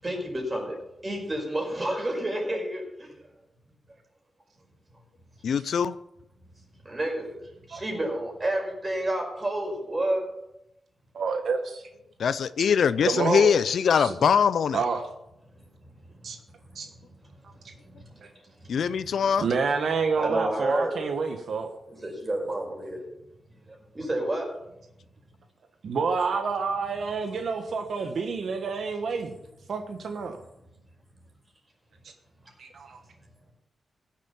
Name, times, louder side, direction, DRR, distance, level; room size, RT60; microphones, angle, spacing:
voice 1, 0.0-0.7 1.0-3.3 3.9-4.0 6.5-10.3 15.5-19.2 20.2-21.2 21.9-23.1 23.5-24.5 27.3-27.4 27.9-28.1, right 1 dB, 25° right, 0 dB, 5.4 m, -31 dB
voice 2, 5.4-5.9 12.2-14.8 18.7-19.5, left 7 dB, 75° left, 16 dB, 0.5 m, -22 dB
voice 3, 11.1-11.9 13.1-13.6 13.9-14.1 14.7-15.0 16.2-16.4 16.7-16.9 19.4-21.7 25.8-29.4 29.7-30.4 32.6-33.0, right 5 dB, 65° right, 6 dB, 1.3 m, -28 dB
16.0 x 7.5 x 7.2 m, 0.86 s
wide cardioid pair, 110°, 0 cm